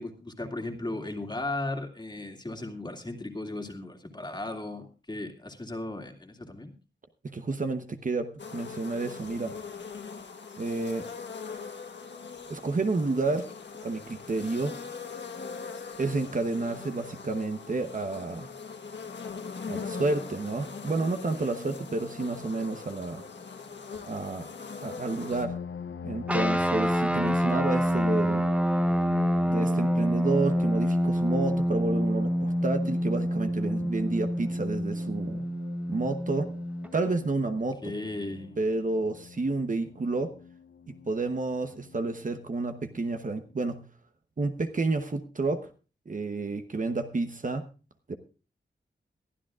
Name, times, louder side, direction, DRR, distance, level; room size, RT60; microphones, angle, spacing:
voice 1, 0.0-6.7 37.8-38.6, left 2 dB, 25° left, 3 dB, 2.3 m, -36 dB
voice 2, 7.2-9.5 10.6-11.1 12.5-13.5 13.8-14.8 16.0-18.5 19.7-23.2 24.1-24.5 24.8-25.6 26.0-28.4 29.5-35.4 35.9-36.5 36.9-37.9 38.6-40.3 40.9-43.9 44.4-45.7 46.1-47.6 48.1-48.2, right 3 dB, 45° right, 7 dB, 1.0 m, -30 dB
sound 1, 8.4-25.5, left 5 dB, 70° left, 1.4 m, -41 dB
sound 2, 25.3-42.3 43.0-43.1 43.5-43.7, left 6 dB, 85° left, 0.8 m, -42 dB
sound 3, 26.3-36.9, equal, 5° right, 0.9 m, -27 dB
22.5 x 12.5 x 2.4 m, 0.34 s
wide cardioid pair, 115°, 19 cm